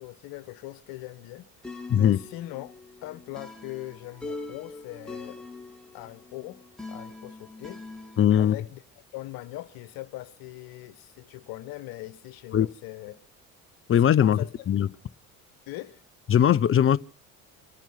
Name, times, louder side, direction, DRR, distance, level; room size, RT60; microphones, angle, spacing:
voice 1, 0.0-1.5 2.0-2.7 3.0-5.4 5.9-7.8 8.3-8.8 9.1-13.1 14.2-14.5 15.7-16.0, left 17 dB, 60° left, 1.4 m, -40 dB
sound 1, 1.6-8.5, left 3 dB, ahead, 2.9 m, -43 dB
voice 2, 8.2-8.6 12.5-12.7 13.9-14.4 14.7-14.9 16.3-17.0, left 9 dB, 30° left, 0.7 m, -19 dB
26.0 x 9.2 x 5.8 m
hypercardioid pair, 60°, 40 cm